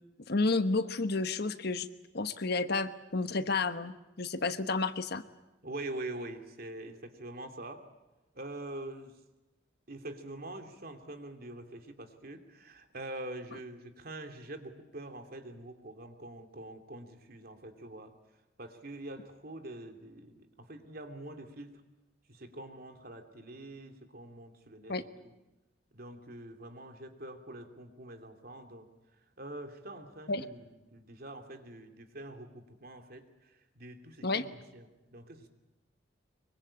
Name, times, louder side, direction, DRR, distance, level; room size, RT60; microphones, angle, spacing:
voice 1, 0.3-1.9 2.1-5.2 24.9-25.0 30.3-30.5 34.2-34.5, left 3 dB, 60° left, 11 dB, 1.2 m, -31 dB
voice 2, 5.6-7.8 8.3-9.2 9.9-18.1 18.6-21.8 22.3-25.3 25.9-35.5, right 1 dB, 55° right, 5 dB, 2.8 m, -45 dB
24.5 x 23.5 x 8.7 m, 1.0 s
head